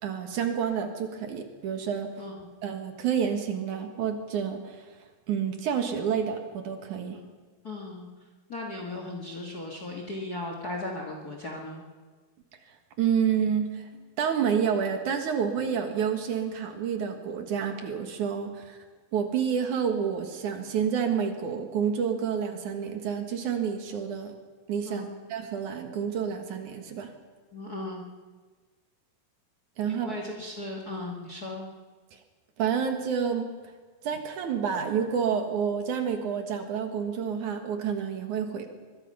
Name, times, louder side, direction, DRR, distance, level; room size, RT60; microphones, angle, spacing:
voice 1, 0.0-2.1 2.6-4.8 5.3-7.2 13.0-13.9 14.2-18.8 19.1-24.3 24.7-27.1 29.8-30.1 32.6-33.5 34.0-38.7, right 7 dB, 65° right, 5 dB, 2.9 m, -29 dB
voice 2, 7.6-8.1 8.5-11.8 24.8-25.2 27.5-28.0 29.9-31.6, left 2 dB, 35° left, 2 dB, 1.7 m, -37 dB
23.0 x 21.5 x 5.6 m, 1.4 s
omnidirectional pair, 4.0 m